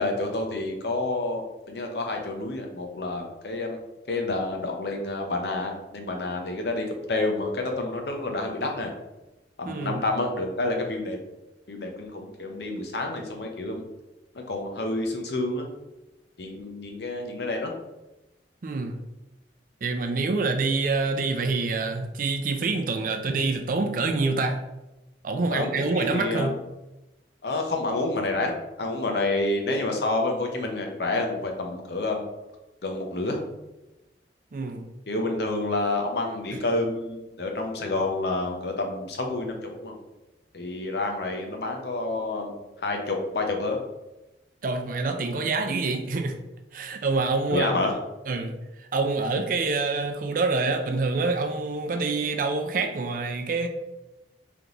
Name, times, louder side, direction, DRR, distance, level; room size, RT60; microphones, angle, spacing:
voice 1, 0.0-3.8 4.1-8.9 9.6-11.2 11.7-13.8 14.3-15.7 16.4-17.7 25.5-26.6 27.4-32.3 32.8-33.4 35.1-40.0 40.5-43.8 47.5-48.0, left 2 dB, 65° left, 2 dB, 0.7 m, -29 dB
voice 2, 9.7-10.0 18.6-19.0 19.8-24.6 25.2-26.5 34.5-34.9 44.6-46.4 46.7-47.8 48.3-53.7, right 3 dB, 50° right, 5 dB, 0.4 m, -26 dB
3.5 x 2.9 x 3.8 m, 0.99 s
head